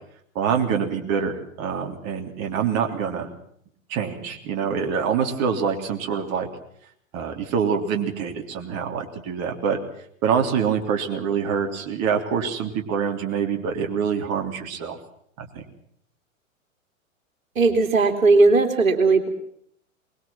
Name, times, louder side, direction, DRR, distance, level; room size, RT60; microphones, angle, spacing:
voice 1, 0.3-3.3 3.9-6.5 7.1-9.8 10.2-15.0 15.4-15.6, right 7 dB, 35° right, 4 dB, 3.4 m, -25 dB
voice 2, 17.5-19.3, right 3 dB, 75° right, 6 dB, 3.2 m, -17 dB
23.5 x 21.5 x 6.1 m, 0.67 s
figure-of-eight pair, 105°, 41 cm